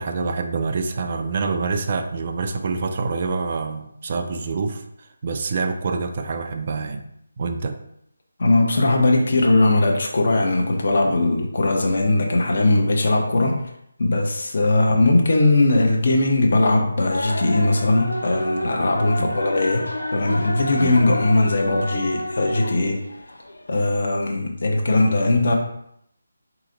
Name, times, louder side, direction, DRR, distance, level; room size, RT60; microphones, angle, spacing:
voice 1, 0.0-4.8 5.2-7.1 7.4-7.8 19.2-19.3 20.8-21.0, right 4 dB, 40° right, 6 dB, 0.4 m, -26 dB
voice 2, 8.4-13.6 14.0-19.8 20.1-23.0 23.7-25.5, left 2 dB, 50° left, 1 dB, 0.9 m, -19 dB
sound 1, 17.1-23.7, left 1 dB, 80° left, 0.7 m, -29 dB
4.1 x 3.0 x 3.8 m, 0.74 s
figure-of-eight pair, 155°, 0 cm